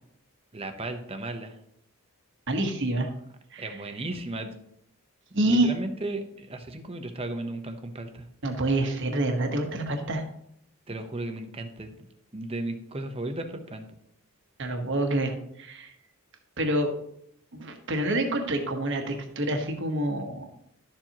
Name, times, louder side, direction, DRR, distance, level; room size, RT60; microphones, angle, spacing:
voice 1, 0.5-1.6 2.9-3.1 3.6-4.5 5.5-8.3 10.9-11.9 12.3-13.9, right 2 dB, 25° right, 6 dB, 0.8 m, -35 dB
voice 2, 2.5-3.1 3.5-3.8 5.3-5.7 8.4-10.2 14.6-15.9 16.6-16.9 17.5-20.5, right 1 dB, 55° right, 4 dB, 1.2 m, -27 dB
12.0 x 7.3 x 3.0 m, 0.72 s
head